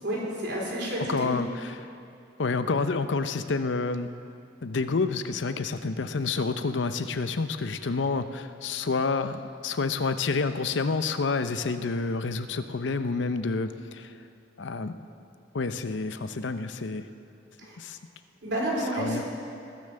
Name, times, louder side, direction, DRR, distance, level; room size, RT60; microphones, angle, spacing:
voice 1, 0.0-1.3 17.6-17.8 18.4-19.3, right 1 dB, 70° right, -4 dB, 3.8 m, -30 dB
voice 2, 1.1-1.9 2.4-4.1 4.6-14.1 14.6-15.0 15.5-17.1 17.8-18.0 18.9-19.2, left 4 dB, 80° left, 10 dB, 0.6 m, -29 dB
20.5 x 7.0 x 6.5 m, 2.7 s
head